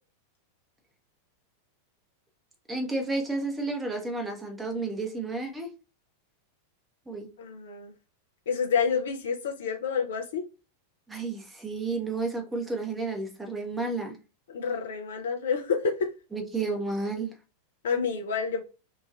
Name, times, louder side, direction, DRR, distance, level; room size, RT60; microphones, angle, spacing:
voice 1, 2.7-5.7 7.1-7.3 11.1-14.1 16.3-17.3, right 3 dB, 10° right, 0.7 m, -31 dB
voice 2, 7.4-7.9 8.5-10.4 14.5-16.1 17.8-18.6, left 6 dB, 60° left, 0.4 m, -28 dB
3.0 x 2.3 x 2.4 m
figure-of-eight pair, 90°, 0 cm